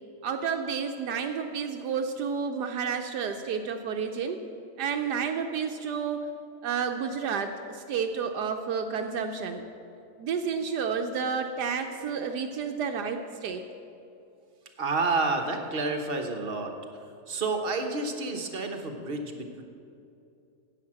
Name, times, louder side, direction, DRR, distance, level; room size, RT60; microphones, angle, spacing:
voice 1, 0.2-4.4 4.8-6.3 6.6-9.6 10.2-13.6, right 6 dB, 75° right, 5 dB, 1.2 m, -30 dB
voice 2, 14.8-16.7 17.3-19.6, right 3 dB, 40° right, 5 dB, 1.0 m, -29 dB
11.0 x 8.5 x 7.4 m, 2.6 s
omnidirectional pair, 1.9 m